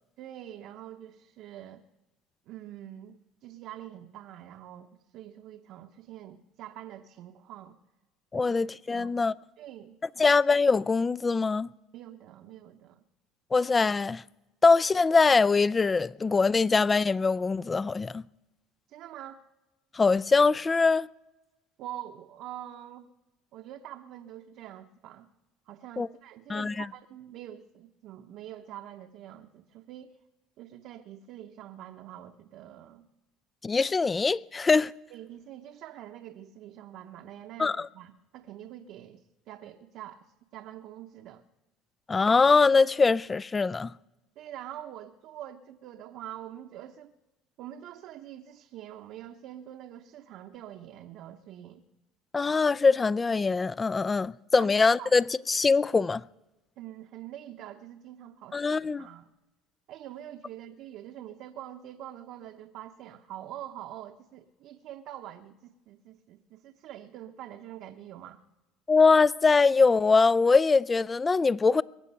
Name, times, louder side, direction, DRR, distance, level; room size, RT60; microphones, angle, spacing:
voice 1, 0.2-1.8 2.5-7.8 8.3-8.6 8.9-9.1 9.6-10.2 11.9-13.0 18.9-19.4 21.8-23.1 23.5-25.3 25.7-30.1 30.6-33.1 35.1-39.2 39.5-40.3 40.5-41.4 44.4-47.1 47.6-51.8 54.6-55.1 56.8-59.3 59.9-68.4, right 12 dB, 65° right, 0.9 m, -45 dB
voice 2, 8.3-9.3 10.2-11.7 13.5-14.2 14.6-18.2 19.9-21.1 26.0-26.1 26.5-26.9 33.6-34.9 37.6-37.9 42.1-43.9 52.3-56.2 58.5-59.1 68.9-71.8, left 4 dB, 25° left, 0.4 m, -23 dB
22.0 x 9.1 x 5.6 m
supercardioid pair, 95°, 0 cm